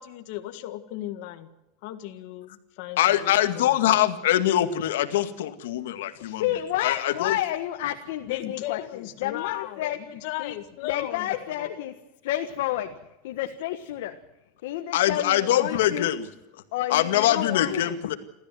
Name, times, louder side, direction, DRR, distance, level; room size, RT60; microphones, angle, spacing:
voice 1, 0.0-1.5 1.8-3.8 8.2-11.7, left 14 dB, 50° left, 7 dB, 1.8 m, -36 dB
voice 2, 3.0-6.5 6.8-7.4 14.9-16.3 16.9-18.1, left 12 dB, 90° left, 9 dB, 1.9 m, -23 dB
voice 3, 6.2-8.8 9.2-10.0 10.4-10.5 10.8-11.9 12.2-12.9 13.2-14.1 14.6-16.1 16.7-18.0, left 13 dB, 65° left, 5 dB, 1.5 m, -30 dB
28.5 x 14.0 x 7.8 m, 0.94 s
supercardioid pair, 175°, 0 cm